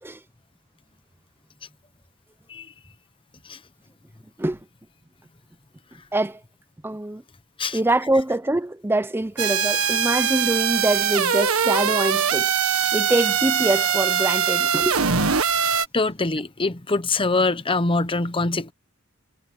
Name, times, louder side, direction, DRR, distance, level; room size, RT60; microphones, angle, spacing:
voice 1, 6.8-7.2 7.7-12.5 12.9-15.2, right 1 dB, 10° right, 0.6 m, -24 dB
sound 1, 9.4-15.9, right 7 dB, 85° right, 1.6 m, -22 dB
voice 2, 15.9-18.7, left 3 dB, 25° left, 0.9 m, -24 dB
head